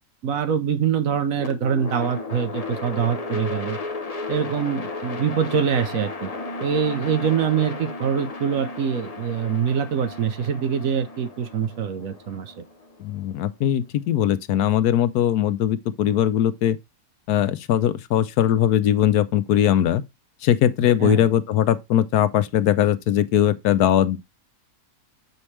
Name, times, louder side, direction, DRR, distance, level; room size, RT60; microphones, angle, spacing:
voice 1, 0.2-3.8 4.3-6.3 6.6-12.5 21.0-21.3, right 7 dB, 65° right, 1.1 m, -24 dB
sound 1, 1.4-13.5, left 3 dB, 30° left, 0.8 m, -34 dB
voice 2, 13.0-16.8 17.3-20.0 20.4-24.2, left 11 dB, 80° left, 1.2 m, -20 dB
7.1 x 5.3 x 3.2 m
omnidirectional pair, 1.7 m